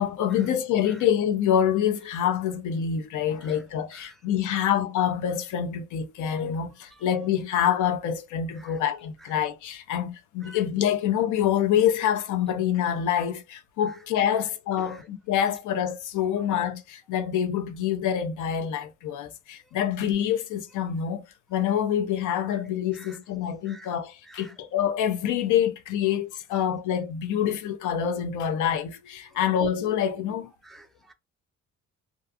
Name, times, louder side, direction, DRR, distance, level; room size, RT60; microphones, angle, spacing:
voice 1, 0.0-21.2 21.5-30.5, left 9 dB, 80° left, 0.6 m, -26 dB
voice 2, 30.6-31.1, right 2 dB, ahead, 0.3 m, -50 dB
2.4 x 2.3 x 2.5 m
cardioid pair, 90°, 30 cm